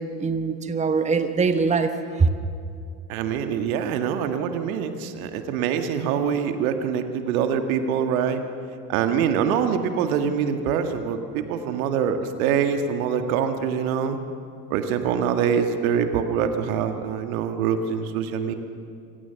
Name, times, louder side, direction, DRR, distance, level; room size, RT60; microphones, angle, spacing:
voice 1, 0.0-2.3, right 4 dB, 15° right, 9 dB, 1.1 m, -23 dB
voice 2, 3.1-8.4 8.9-14.2 14.7-18.5, right 7 dB, 60° right, 7 dB, 1.9 m, -24 dB
26.5 x 17.0 x 7.0 m, 2.4 s
figure-of-eight pair, 70°, 46 cm